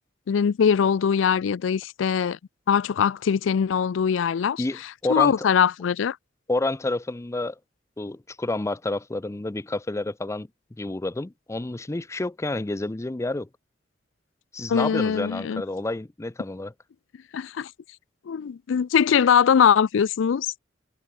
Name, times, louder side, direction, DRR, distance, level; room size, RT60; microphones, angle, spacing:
voice 1, 0.3-2.4 2.7-4.6 5.1-6.2 14.7-15.6 17.3-17.7 18.3-20.5, left 7 dB, 90° left, 0.4 m, -21 dB
voice 2, 4.6-5.3 6.5-7.6 8.0-10.5 10.8-13.5 14.5-16.7, left 2 dB, 15° left, 0.5 m, -29 dB
head